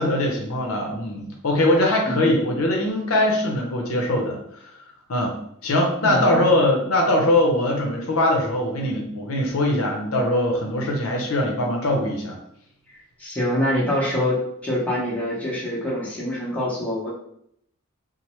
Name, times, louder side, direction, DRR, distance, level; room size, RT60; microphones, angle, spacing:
voice 1, 0.0-4.6 5.1-5.4 5.6-12.4, left 1 dB, 75° left, 0 dB, 0.6 m, -22 dB
voice 2, 6.0-6.4 13.2-17.1, left 1 dB, 5° left, -6 dB, 0.7 m, -25 dB
3.1 x 2.0 x 2.9 m, 0.72 s
head